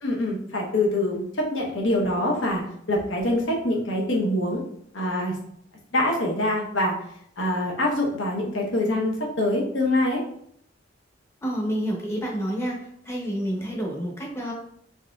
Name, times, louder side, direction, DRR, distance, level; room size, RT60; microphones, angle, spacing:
voice 1, 0.0-2.6 2.9-4.6 4.9-5.3 5.9-6.9 7.4-10.2, left 1 dB, 80° left, -1 dB, 0.9 m, -24 dB
voice 2, 11.4-14.5, equal, 15° left, -1 dB, 0.7 m, -29 dB
4.0 x 2.5 x 2.3 m, 0.69 s
head